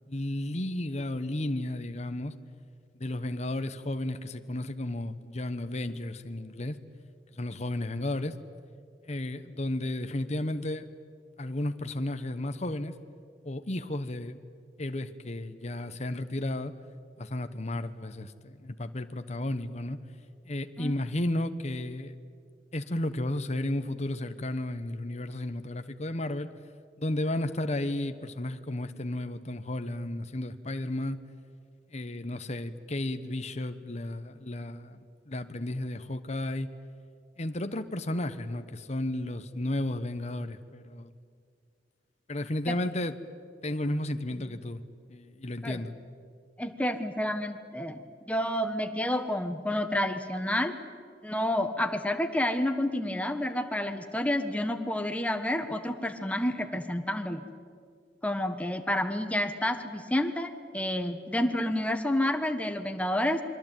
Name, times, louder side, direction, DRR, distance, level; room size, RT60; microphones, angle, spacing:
voice 1, 0.1-2.3 2.9-6.8 7.3-8.4 9.0-10.9 11.4-12.9 13.4-14.4 14.8-16.7 17.2-20.0 20.4-22.1 22.7-26.5 27.0-31.2 31.9-35.0 35.3-36.7 37.4-41.1 42.3-43.1 43.6-44.8 45.1-45.9, left 1 dB, 40° left, 9 dB, 1.1 m, -33 dB
voice 2, 46.6-48.0 48.3-50.7 51.2-57.4 58.2-63.4, left 1 dB, 10° left, 7 dB, 1.5 m, -29 dB
28.0 x 23.0 x 9.2 m, 2.1 s
head